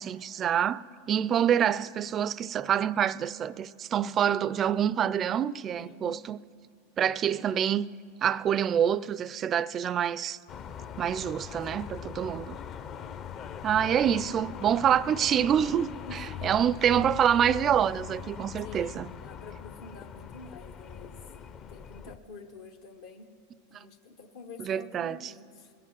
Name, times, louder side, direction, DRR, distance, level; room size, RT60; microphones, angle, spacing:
voice 1, 0.0-6.4 7.0-7.9 8.2-10.4 11.0-12.6 13.6-19.1 23.7-23.8 24.6-25.3, right 9 dB, 30° right, 0.3 m, -26 dB
voice 2, 5.8-6.3 15.7-16.5 18.6-21.2 21.7-23.3 23.7-25.7, left 4 dB, 70° left, 1.0 m, -48 dB
sound 1, 10.5-22.2, left 8 dB, 40° left, 0.6 m, -41 dB
20.5 x 7.6 x 7.6 m
hypercardioid pair, 115°, 0 cm